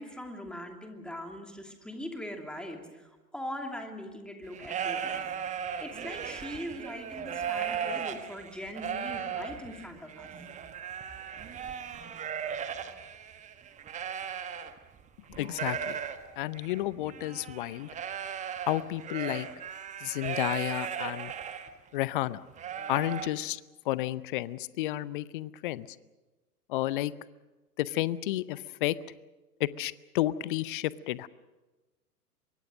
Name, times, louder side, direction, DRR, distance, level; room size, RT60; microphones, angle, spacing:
voice 1, 0.0-5.2 5.8-10.3, left 1 dB, ahead, 3 dB, 2.7 m, -41 dB
sound 1, 4.4-15.0 15.3-21.7 22.1-22.2 22.6-23.3, right 7 dB, 15° right, 1.3 m, -37 dB
voice 2, 15.3-16.0 16.4-17.9 18.7-19.5 20.0-21.3 21.9-22.4 22.9-23.6 23.9-25.9 26.7-27.1 27.8-28.9 29.6-31.3, left 15 dB, 35° left, 19 dB, 0.7 m, -31 dB
25.0 x 22.5 x 6.5 m, 1.2 s
figure-of-eight pair, 105°, 47 cm